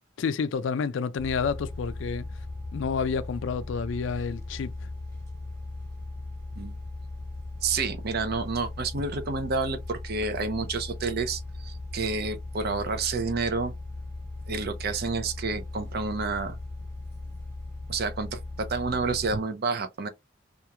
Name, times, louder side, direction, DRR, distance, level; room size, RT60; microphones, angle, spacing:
voice 1, 0.2-2.3 2.7-4.7, left 5 dB, 65° left, 0.3 m, -29 dB
sound 1, 1.2-19.4, left 2 dB, 15° left, 1.1 m, -38 dB
voice 2, 7.6-13.7 14.5-16.6 17.9-20.1, right 4 dB, 50° right, 0.5 m, -29 dB
2.9 x 2.4 x 2.2 m
head